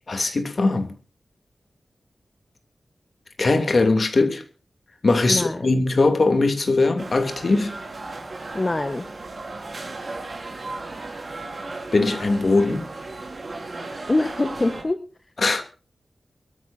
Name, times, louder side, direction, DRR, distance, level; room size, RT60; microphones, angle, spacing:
voice 1, 0.1-0.9 3.4-4.4 5.0-7.7 11.9-12.9 15.4-15.6, left 3 dB, 50° left, 2.9 m, -20 dB
voice 2, 5.3-5.8 8.5-9.1 14.1-15.0, left 2 dB, 30° left, 1.2 m, -24 dB
sound 1, 7.0-14.8, right 2 dB, 45° right, 4.8 m, -35 dB
23.5 x 14.0 x 2.7 m
wide cardioid pair, 115°, 0 cm